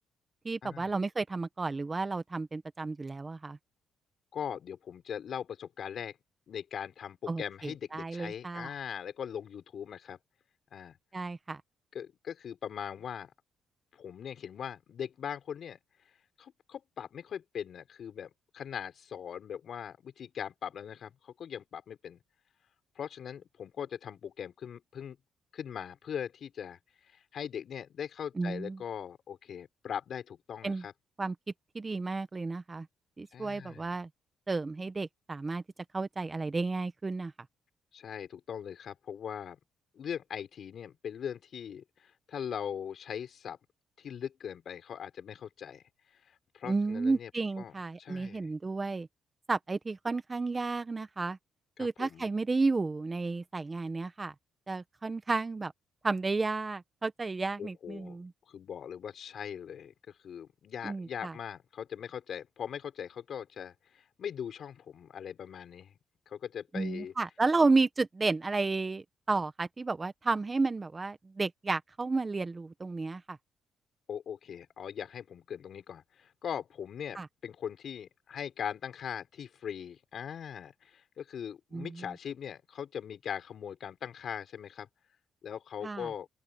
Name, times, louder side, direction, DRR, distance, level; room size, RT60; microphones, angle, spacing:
voice 1, 0.4-3.6 7.3-8.7 11.1-11.6 28.4-28.8 30.6-30.8 31.2-31.3 31.7-32.9 33.2-34.1 34.5-35.6 35.9-37.3 46.6-49.1 49.5-51.4 51.8-54.3 54.7-55.7 56.0-58.3 60.8-61.3 66.7-73.4 77.1-77.3 81.7-82.1 85.8-86.1, right 3 dB, 25° right, 1.3 m, -32 dB
voice 2, 4.3-6.2 6.5-10.2 10.7-11.0 11.9-13.3 13.9-15.8 16.4-22.2 22.9-25.2 25.5-26.8 27.3-30.9 33.3-34.0 37.9-39.6 39.9-43.6 44.0-45.8 46.3-47.3 47.6-48.5 51.8-52.3 57.6-58.2 58.5-65.9 66.3-67.1 74.1-84.9 85.4-86.3, left 8 dB, 60° left, 5.1 m, -40 dB
open air
cardioid pair, 90°, 0 cm